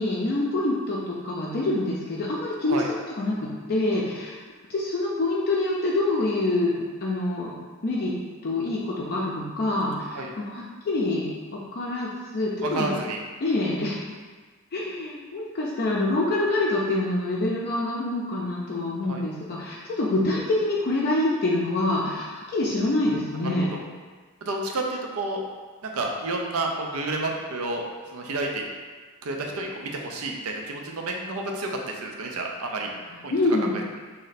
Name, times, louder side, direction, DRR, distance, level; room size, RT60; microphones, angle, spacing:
voice 1, 0.0-2.8 3.2-4.4 4.7-7.5 7.8-8.1 8.4-12.9 13.4-14.0 14.7-23.7 33.3-33.8, left 2 dB, 45° left, -5 dB, 0.5 m, -26 dB
voice 2, 12.6-13.2 19.0-19.2 23.4-23.8 24.4-25.4 25.8-27.9 28.1-28.6 29.2-32.9 33.2-33.3, right 2 dB, 70° right, 1 dB, 0.6 m, -30 dB
3.2 x 2.7 x 4.0 m, 1.4 s
head